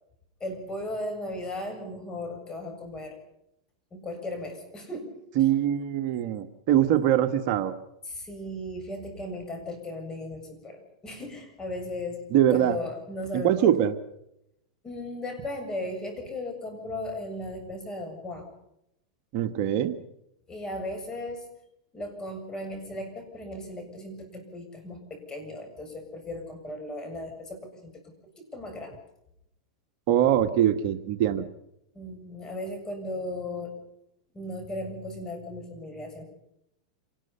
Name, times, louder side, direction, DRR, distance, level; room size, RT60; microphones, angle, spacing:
voice 1, 0.4-3.2 3.9-5.1 8.1-12.3 12.5-13.7 14.8-18.5 20.5-21.5 21.9-27.9 28.4-29.0 31.9-33.8 34.3-36.3, left 1 dB, 20° left, 4 dB, 7.3 m, -36 dB
voice 2, 5.4-7.7 12.3-12.8 13.3-13.9 19.3-19.9 30.1-31.4, right 11 dB, 50° right, 8 dB, 1.5 m, -23 dB
27.0 x 19.5 x 5.7 m, 0.80 s
hypercardioid pair, 125°, 3 cm